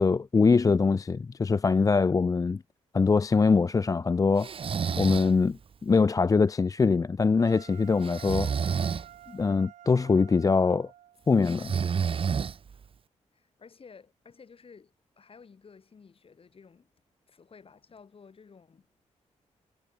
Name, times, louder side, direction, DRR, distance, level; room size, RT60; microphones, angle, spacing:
voice 1, 0.0-2.6 2.9-4.5 5.0-8.5 9.3-10.9 11.3-11.7, left 4 dB, 30° left, 0.5 m, -23 dB
Breathing, 4.4-5.3 8.0-9.1 11.4-12.8, right 6 dB, 45° right, 0.8 m, -29 dB
sound 1, 7.4-11.5, right 12 dB, 85° right, 1.5 m, -51 dB
voice 2, 13.3-16.9 17.3-18.9, left 5 dB, 50° left, 5.7 m, -53 dB
cardioid pair, 65°, 12 cm